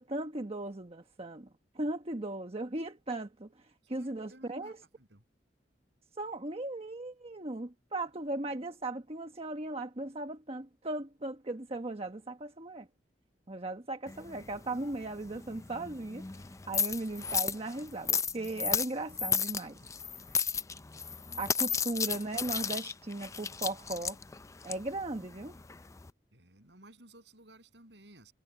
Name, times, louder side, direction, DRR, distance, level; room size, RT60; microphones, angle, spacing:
voice 1, 0.0-1.5 1.7-4.8 6.2-12.9 13.5-16.3 16.7-19.8 21.4-24.2 24.6-25.6, right 2 dB, 35° right, 1.3 m, -37 dB
voice 2, 3.9-5.2 19.8-19.9 21.7-21.8 26.3-28.3, right 1 dB, 75° right, 7.8 m, -57 dB
sound 1, 14.1-26.1, left 6 dB, 15° left, 0.4 m, -35 dB
head